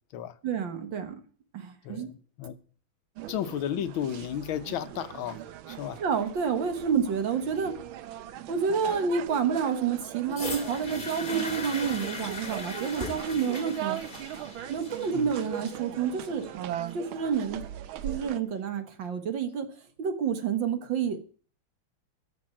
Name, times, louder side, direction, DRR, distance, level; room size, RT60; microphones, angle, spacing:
voice 1, 0.4-1.2 1.5-2.1 6.0-7.7 8.5-14.0 14.7-16.5 16.9-17.7 18.0-19.7 20.0-21.2, right 6 dB, 65° right, 2.1 m, -29 dB
sound 1, 3.2-18.4, right 11 dB, 80° right, 1.6 m, -40 dB
voice 2, 3.3-5.4 5.7-6.0 15.1-15.3, left 10 dB, 75° left, 1.6 m, -33 dB
sound 2, 10.3-18.3 19.1-19.2, left 2 dB, 25° left, 2.0 m, -39 dB
13.0 x 6.6 x 8.8 m
omnidirectional pair, 2.2 m